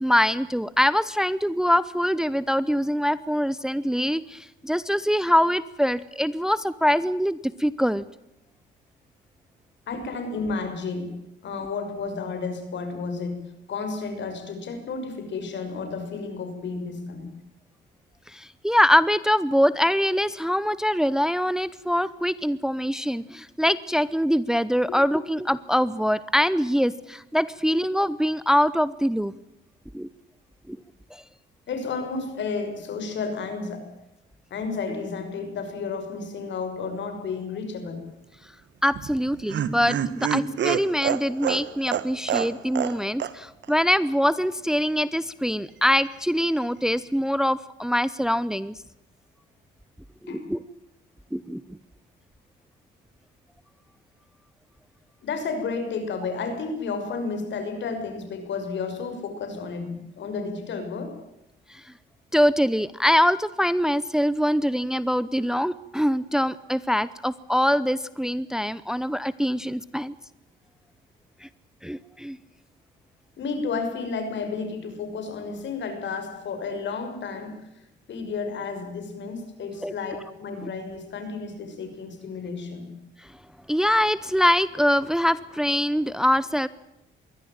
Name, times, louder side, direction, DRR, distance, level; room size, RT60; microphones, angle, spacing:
voice 1, 0.0-8.0 18.3-29.3 29.9-30.1 30.7-30.8 31.1-31.2 38.8-48.8 50.2-50.6 51.3-51.8 61.7-61.9 62.3-70.1 71.4-71.5 71.8-72.4 79.8-79.9 80.6-80.7 83.2-83.3 83.7-86.7, equal, 5° right, 17 dB, 0.8 m, -23 dB
voice 2, 9.9-11.1 11.4-13.4 13.7-17.3 24.9-25.2 31.7-33.9 34.5-38.0 50.3-50.4 55.2-61.2 73.4-77.6 78.1-82.9, left 4 dB, 65° left, 7 dB, 6.3 m, -32 dB
Laughter, 38.9-43.0 43.2-43.3 43.6-43.7, right 9 dB, 65° right, 1.7 m, -27 dB
23.0 x 16.5 x 9.0 m, 0.85 s
cardioid pair, 90°, 20 cm